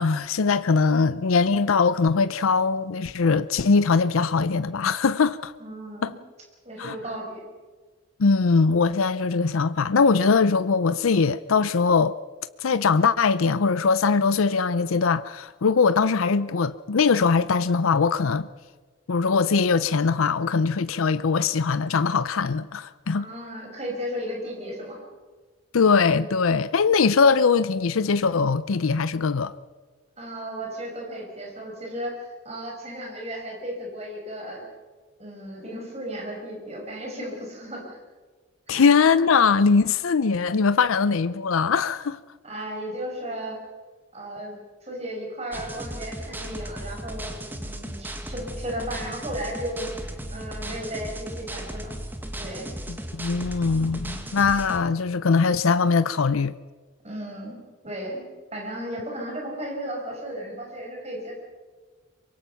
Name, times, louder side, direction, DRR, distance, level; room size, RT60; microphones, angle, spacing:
voice 1, 0.0-5.5 6.0-6.1 6.8-7.0 8.2-12.2 12.6-18.5 19.1-23.3 25.7-29.5 38.7-42.2 52.9-56.6, left 5 dB, 85° left, 0.6 m, -21 dB
voice 2, 5.6-6.2 6.6-7.4 23.1-25.1 30.2-32.1 32.4-34.6 35.2-38.0 38.7-38.9 42.4-43.6 44.1-44.5 44.8-52.0 52.4-52.7 57.0-61.3, equal, 30° right, 5.8 m, -35 dB
sound 1, 45.5-54.8, right 1 dB, 10° right, 1.5 m, -36 dB
24.5 x 22.5 x 5.8 m
head